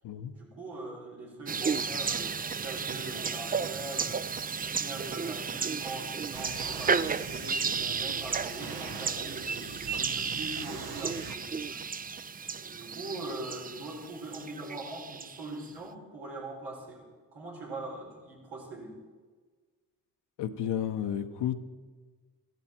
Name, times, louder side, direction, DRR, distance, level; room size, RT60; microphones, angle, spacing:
voice 1, 0.3-4.3 4.6-9.6 9.9-11.8 12.6-17.1 17.3-19.0, right 2 dB, 85° right, -3 dB, 4.2 m, -42 dB
sound 1, 1.5-15.5, right 5 dB, 20° right, 0.4 m, -33 dB
sound 2, 6.3-11.3, right 5 dB, 65° right, 1.2 m, -42 dB
voice 2, 20.4-21.6, left 9 dB, 80° left, 8 dB, 0.9 m, -32 dB
14.5 x 13.5 x 4.4 m, 1.4 s
supercardioid pair, 50°, 41 cm